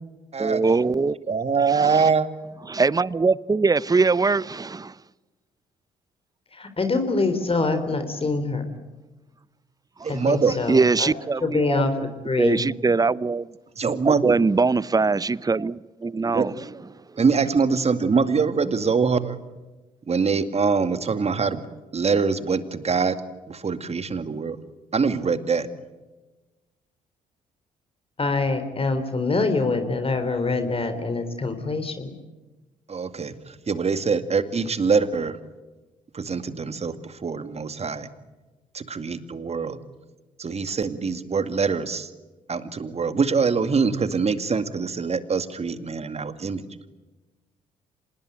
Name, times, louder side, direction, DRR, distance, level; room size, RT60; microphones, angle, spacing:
voice 1, 0.4-1.2 1.7-2.1 2.7-5.0 10.0-10.1 10.7-11.9 12.4-13.5 14.0-16.7 17.1-17.2, right 4 dB, 20° right, 0.8 m, -22 dB
voice 2, 1.3-2.3 10.0-10.5 13.8-14.4 16.3-16.5 17.2-19.4 20.1-21.6 21.9-23.2 23.5-24.6 24.9-25.7 32.9-35.4 36.1-38.1 38.7-39.8 40.4-42.1 42.5-46.6, right 5 dB, 40° right, 2.3 m, -24 dB
voice 3, 6.5-8.7 10.1-11.1 11.4-11.9 12.2-12.6 28.2-32.1, left 3 dB, 35° left, 3.8 m, -25 dB
26.5 x 20.0 x 9.1 m
hypercardioid pair, 50°, 17 cm